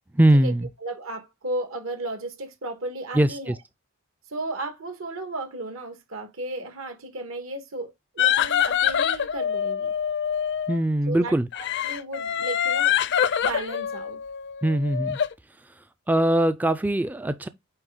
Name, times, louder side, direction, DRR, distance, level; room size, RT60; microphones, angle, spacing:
voice 1, 0.1-0.7 3.1-3.6 10.7-11.5 14.6-15.2 16.1-17.5, right 1 dB, 10° right, 0.3 m, -21 dB
voice 2, 0.8-3.5 4.3-9.9 11.1-11.3 11.8-13.0 13.4-14.2, right 2 dB, 75° right, 1.6 m, -34 dB
sound 1, 8.2-10.8 11.5-15.3, left 9 dB, 55° left, 0.5 m, -25 dB
8.9 x 3.4 x 3.7 m
head